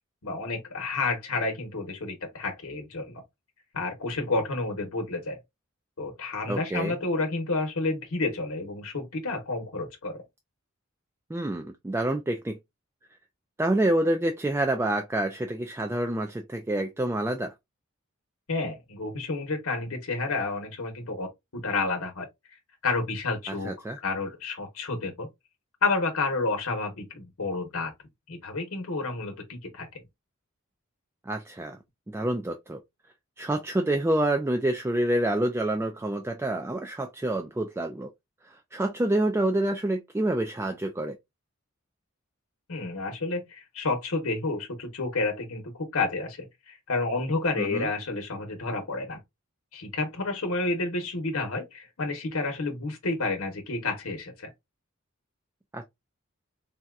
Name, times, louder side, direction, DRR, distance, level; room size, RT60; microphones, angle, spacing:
voice 1, 0.2-3.2 3.7-5.4 6.0-10.2 18.5-21.3 21.5-22.3 22.8-25.3 25.8-27.9 28.3-29.9 42.7-49.2 49.7-54.5, left 3 dB, 85° left, 1.0 m, -30 dB
voice 2, 6.5-6.9 11.3-12.6 13.6-17.5 23.6-24.0 31.3-31.8 32.1-32.8 33.4-38.1 38.7-41.2 47.6-47.9 55.7-55.8, right 1 dB, 10° right, 0.3 m, -27 dB
4.0 x 2.2 x 2.3 m
head